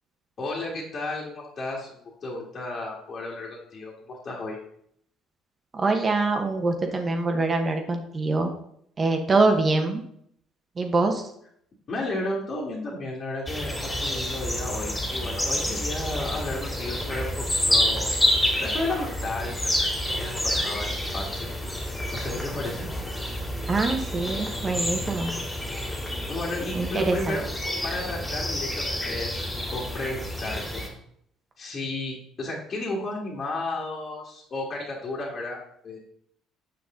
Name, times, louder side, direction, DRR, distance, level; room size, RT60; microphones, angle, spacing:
voice 1, 0.4-4.6 11.9-18.1 18.6-21.8 22.1-22.9 26.3-27.4 27.8-30.8 31.6-35.6 35.8-36.0, left 2 dB, 45° left, -4 dB, 2.0 m, -33 dB
voice 2, 5.7-8.5 9.0-10.0 10.8-11.3 23.7-25.3 26.7-27.4, right 3 dB, 35° right, 4 dB, 1.1 m, -24 dB
sound 1, 13.5-30.9, left 1 dB, 10° left, 2.4 m, -28 dB
7.3 x 5.9 x 3.8 m, 0.69 s
supercardioid pair, 75°, 0 cm